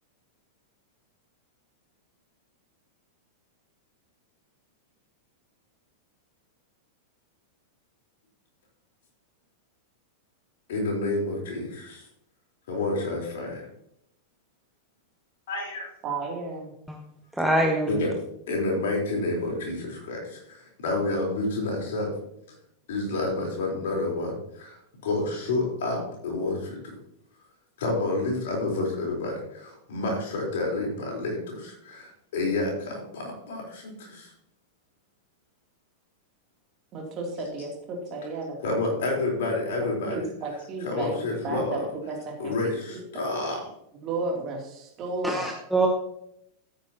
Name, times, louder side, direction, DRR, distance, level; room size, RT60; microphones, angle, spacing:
voice 1, 10.7-12.0 12.7-13.7 15.5-15.9 17.9-18.1 18.5-22.1 22.9-24.8 25.0-27.0 27.8-34.3 38.6-40.2 40.8-41.8 42.4-43.6, left 2 dB, 55° left, 0 dB, 4.0 m, -29 dB
voice 2, 16.0-16.7 36.9-38.6 40.1-41.2 41.4-41.8 42.1-42.5 42.9-43.2 44.0-45.5, right 3 dB, 35° right, 0 dB, 2.9 m, -33 dB
voice 3, 17.3-17.9 45.2-45.9, right 2 dB, 5° right, 1 dB, 1.2 m, -24 dB
13.0 x 9.5 x 2.9 m, 0.76 s
figure-of-eight pair, 90°, 0 cm